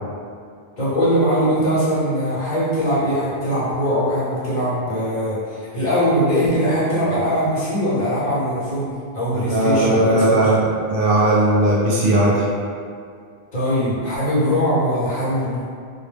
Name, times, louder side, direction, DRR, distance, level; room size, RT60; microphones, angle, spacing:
voice 1, 0.8-10.4 13.5-15.6, equal, 50° left, -10 dB, 0.9 m, -21 dB
voice 2, 9.3-12.5, right 1 dB, 65° right, -6 dB, 0.7 m, -17 dB
2.1 x 2.1 x 3.2 m, 2.2 s
omnidirectional pair, 1.0 m